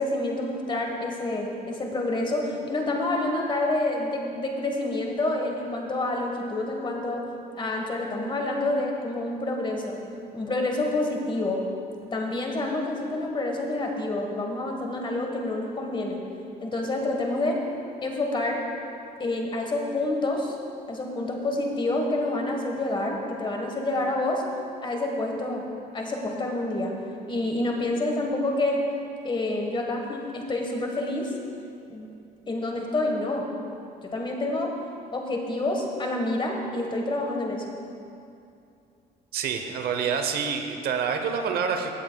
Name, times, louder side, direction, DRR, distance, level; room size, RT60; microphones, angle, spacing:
voice 1, 0.0-7.3 7.6-10.0 10.3-11.6 12.1-16.2 16.6-17.6 18.0-18.6 19.2-20.6 20.9-24.4 24.8-25.6 25.9-26.9 27.3-28.8 29.2-31.3 31.9-32.1 32.5-33.5 34.0-34.7 35.1-37.7, left 2 dB, 30° left, 2 dB, 1.3 m, -28 dB
voice 2, 39.3-41.9, right 6 dB, 65° right, 6 dB, 0.8 m, -27 dB
15.5 x 8.0 x 2.3 m, 2.5 s
cardioid pair, 110°, 17 cm